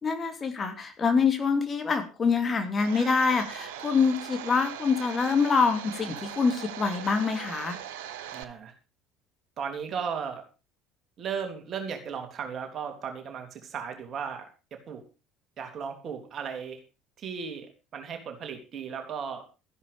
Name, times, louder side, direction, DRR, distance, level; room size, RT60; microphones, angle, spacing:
voice 1, 0.0-7.8, left 5 dB, 30° left, 7 dB, 2.7 m, -25 dB
Domestic sounds home sounds, 2.8-8.4, right 11 dB, 65° right, 1.3 m, -40 dB
voice 2, 8.3-8.7 9.6-10.4 11.2-14.4 14.9-15.0 15.6-16.8 17.2-19.4, right 6 dB, 40° right, 5 dB, 3.3 m, -36 dB
13.5 x 11.0 x 5.1 m, 0.32 s
figure-of-eight pair, 60°, 0 cm